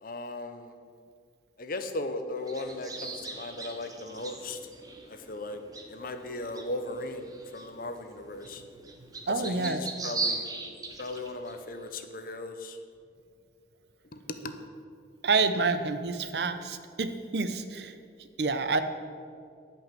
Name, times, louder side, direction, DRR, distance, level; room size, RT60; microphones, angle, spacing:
voice 1, 0.0-0.7 1.6-4.6 5.1-5.6 5.9-8.6 9.3-10.5 11.0-12.8 14.1-14.5, left 2 dB, 50° left, 7 dB, 0.8 m, -37 dB
sound 1, 2.4-11.8, right 3 dB, 20° right, 0.9 m, -39 dB
voice 2, 9.3-9.8 15.2-18.0 18.4-18.8, right 4 dB, 60° right, 10 dB, 0.7 m, -28 dB
12.0 x 5.5 x 7.6 m, 2.3 s
head